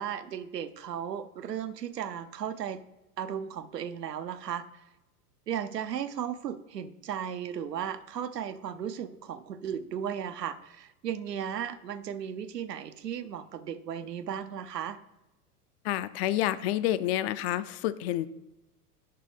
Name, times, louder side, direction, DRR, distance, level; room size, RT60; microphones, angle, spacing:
voice 1, 0.0-2.8 3.2-4.8 5.5-15.0, right 9 dB, 90° right, 12 dB, 0.7 m, -35 dB
voice 2, 15.8-18.3, left 13 dB, 45° left, 15 dB, 0.5 m, -29 dB
6.7 x 5.1 x 5.1 m, 0.98 s
hypercardioid pair, 95°, 47 cm